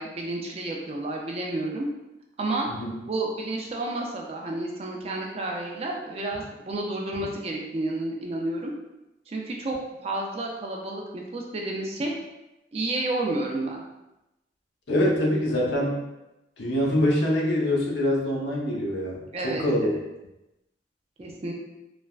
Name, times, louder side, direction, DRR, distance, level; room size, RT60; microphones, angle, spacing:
voice 1, 0.0-1.9 2.4-2.7 3.1-8.7 9.3-9.8 10.0-12.1 12.7-13.8 19.3-20.0 21.2-21.5, right 2 dB, 35° right, 0 dB, 0.4 m, -30 dB
voice 2, 14.9-16.0 16.6-19.9, left 1 dB, 80° left, -3 dB, 0.7 m, -24 dB
3.2 x 2.1 x 2.3 m, 0.95 s
head